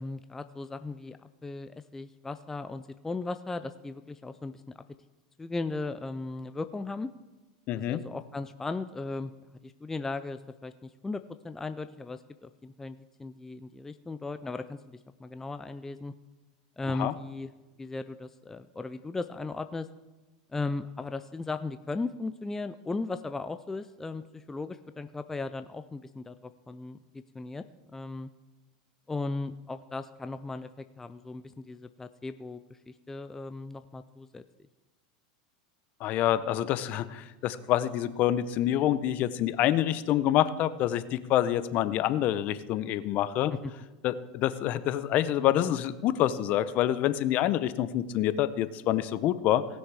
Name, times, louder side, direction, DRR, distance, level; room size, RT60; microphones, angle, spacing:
voice 1, 0.0-4.6 5.4-7.1 7.7-9.3 9.6-16.1 16.8-17.5 17.8-19.9 20.5-28.3 29.1-32.6 32.9-34.4 43.6-43.7 45.4-45.6, left 3 dB, 10° left, 10 dB, 0.4 m, -37 dB
voice 2, 7.7-8.0 17.0-17.1 36.0-43.5 44.0-49.6, left 12 dB, 45° left, 14 dB, 0.7 m, -27 dB
18.5 x 6.4 x 4.8 m, 1.2 s
supercardioid pair, 120°, 4 cm